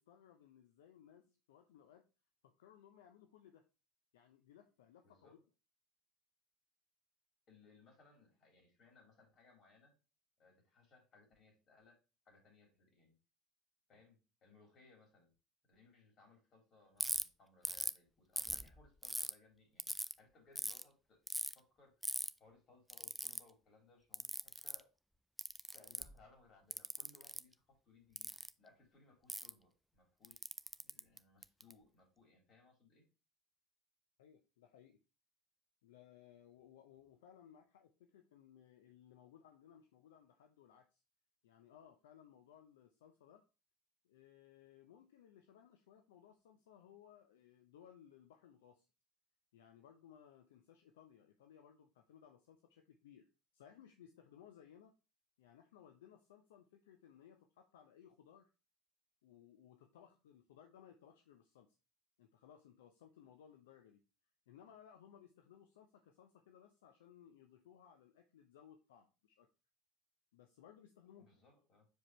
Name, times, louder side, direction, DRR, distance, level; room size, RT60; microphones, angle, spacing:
voice 1, 0.0-2.1 2.4-3.6 4.1-5.4 34.2-35.0 35.8-41.0 41.4-43.4 44.0-48.9 49.5-55.0 55.4-58.5 59.2-61.7 62.2-64.0 64.5-69.5 70.3-71.3, left 9 dB, 75° left, 5 dB, 0.6 m, -62 dB
voice 2, 5.0-5.5 7.5-9.9 10.4-12.0 12.3-13.1 13.9-15.3 15.7-21.2 21.5-21.9 22.4-24.9 25.7-28.3 28.6-30.5 30.8-33.1 71.2-71.9, left 3 dB, 45° left, 0 dB, 3.8 m, -67 dB
Ratchet pawl, 17.0-17.2 17.7-18.0 18.4-19.3 19.8-20.1 20.6-20.8 21.3-21.5 22.0-22.3 22.9-23.4 24.1-24.8 25.4-26.2 26.7-27.4 28.2-28.5 29.3-29.5 30.2-31.7, right 1 dB, 5° right, 0.4 m, -40 dB
6.3 x 4.9 x 3.2 m, 0.30 s
hypercardioid pair, 75°, 0 cm